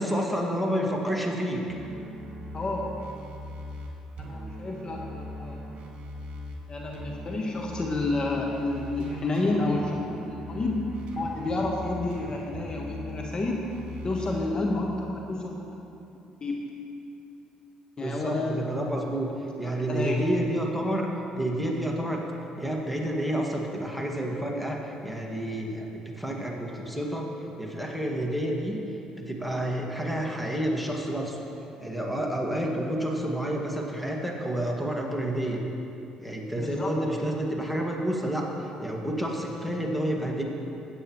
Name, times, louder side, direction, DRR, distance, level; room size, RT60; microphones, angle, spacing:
voice 1, 0.0-1.6 18.0-19.3 19.6-21.1 21.3-22.2 22.6-25.9 26.2-27.3 27.6-28.8 29.2-31.4 31.8-35.6 36.2-40.4, right 1 dB, ahead, 0 dB, 1.9 m, -29 dB
sound 1, 1.7-6.6 6.9-14.4, equal, 60° right, 1.8 m, -39 dB
voice 2, 2.5-2.9 4.2-5.6 6.7-13.7 14.0-15.6 16.4-16.6 18.0-18.7 19.6-20.2 36.6-36.9, left 2 dB, 35° left, 0 dB, 1.2 m, -30 dB
15.5 x 9.1 x 3.1 m, 2.8 s
hypercardioid pair, 60°, 2 cm